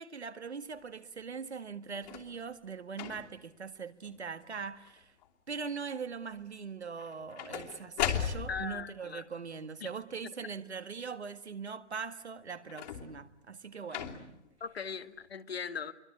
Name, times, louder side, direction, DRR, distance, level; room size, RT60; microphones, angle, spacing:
voice 1, 0.0-5.1 5.5-14.1, right 5 dB, 70° right, 1.9 m, -41 dB
sound 1, 1.9-2.4 2.9-3.5 4.1-4.4 4.7-5.3 7.0-8.8 12.6-13.3 13.9-14.5 15.3-15.4, left 9 dB, 40° left, 2.9 m, -37 dB
voice 2, 8.5-9.2 9.8-9.9 14.6-15.9, left 6 dB, 60° left, 1.9 m, -39 dB
28.5 x 24.0 x 8.4 m
figure-of-eight pair, 135°, 34 cm